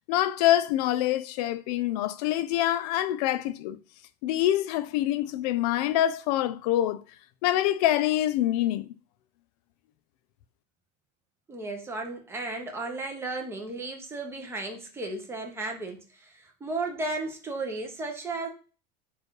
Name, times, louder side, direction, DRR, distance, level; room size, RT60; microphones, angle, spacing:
voice 1, 0.1-3.8 4.2-7.0 7.4-8.9, left 13 dB, 70° left, 0.5 m, -25 dB
voice 2, 11.5-18.5, right 2 dB, 10° right, 0.8 m, -34 dB
4.4 x 2.5 x 4.6 m
supercardioid pair, 155°, 21 cm